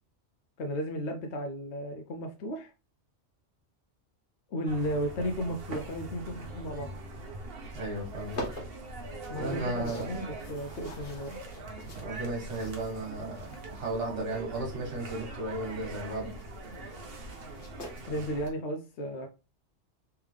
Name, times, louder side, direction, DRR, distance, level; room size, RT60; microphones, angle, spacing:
voice 1, 0.6-2.7 4.5-6.9 9.3-11.4 18.1-19.3, equal, 70° left, 3 dB, 0.9 m, -34 dB
sound 1, 4.7-18.5, right 2 dB, 55° right, 1.1 m, -42 dB
sound 2, 7.6-18.3, left 1 dB, 50° left, 1.3 m, -47 dB
voice 2, 7.7-8.4 9.3-10.1 11.9-16.3, right 2 dB, 70° right, -1 dB, 1.8 m, -35 dB
3.4 x 3.4 x 3.2 m, 0.30 s
omnidirectional pair, 1.2 m